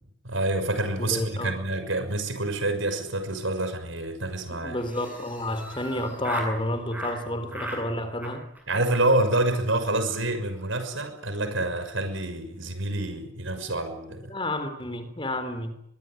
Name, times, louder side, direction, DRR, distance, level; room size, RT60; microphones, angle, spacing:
voice 1, 0.2-4.8 8.7-14.3, right 2 dB, 75° right, 8 dB, 6.3 m, -27 dB
voice 2, 1.1-1.5 4.6-8.5 14.3-15.8, left 1 dB, 25° left, 9 dB, 3.6 m, -30 dB
Laughter, 4.8-6.6 6.9-7.2 7.5-7.8 8.2-8.6 8.9-9.0 9.3-9.4 9.7-9.8 10.0-10.2 10.5-10.8, right 1 dB, 10° right, 7.5 m, -38 dB
23.5 x 23.0 x 9.2 m, 0.79 s
head